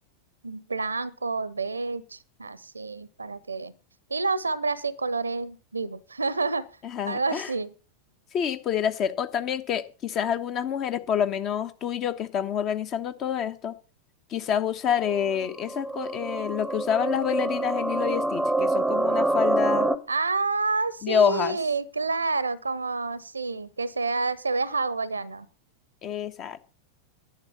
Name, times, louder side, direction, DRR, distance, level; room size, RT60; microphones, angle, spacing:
voice 1, 0.4-3.7 4.1-6.7 7.1-7.7 20.1-25.5, right 4 dB, 80° right, 21 dB, 0.9 m, -29 dB
voice 2, 6.8-7.5 8.3-13.7 14.3-19.9 21.0-21.6 26.0-26.6, left 8 dB, 35° left, 11 dB, 1.3 m, -27 dB
sound 1, 14.9-20.0, right 2 dB, ahead, 1.0 m, -26 dB
11.5 x 8.1 x 6.9 m, 0.34 s
figure-of-eight pair, 90°, 0 cm